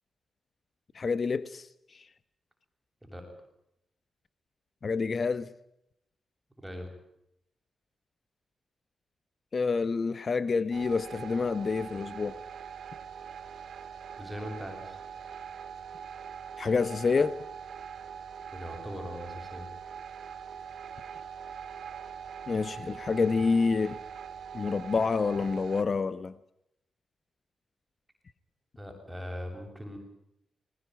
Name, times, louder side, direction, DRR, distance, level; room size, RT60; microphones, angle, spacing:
voice 1, 0.9-1.7 1.9-2.0 4.8-5.5 9.5-12.4 16.6-17.4 22.5-24.0 24.5-26.3, left 4 dB, 50° left, 1.1 m, -28 dB
voice 2, 6.6-6.9 14.1-15.0 18.5-19.7 28.8-30.0, equal, 10° right, 7.5 m, -40 dB
sound 1, 10.7-25.8, right 7 dB, 75° right, 2.2 m, -43 dB
21.0 x 19.5 x 9.6 m
cardioid pair, 70°, 0 cm